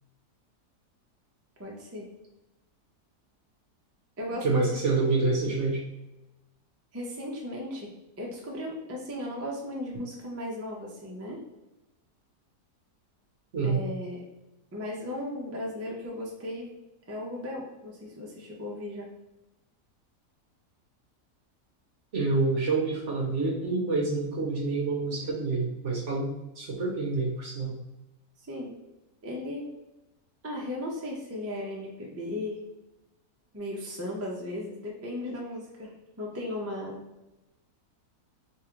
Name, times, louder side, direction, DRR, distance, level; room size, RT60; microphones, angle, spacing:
voice 1, 1.6-2.1 4.2-4.8 6.9-11.4 13.6-14.2 14.7-16.7 17.1-19.1 28.4-28.7 29.2-29.7 30.4-32.6 33.5-37.0, left 1 dB, 20° right, -3 dB, 0.4 m, -36 dB
voice 2, 4.4-5.8 13.5-13.9 22.1-26.3 26.6-27.8, right 3 dB, 55° right, -1 dB, 1.0 m, -27 dB
3.6 x 3.1 x 3.1 m, 0.99 s
omnidirectional pair, 1.8 m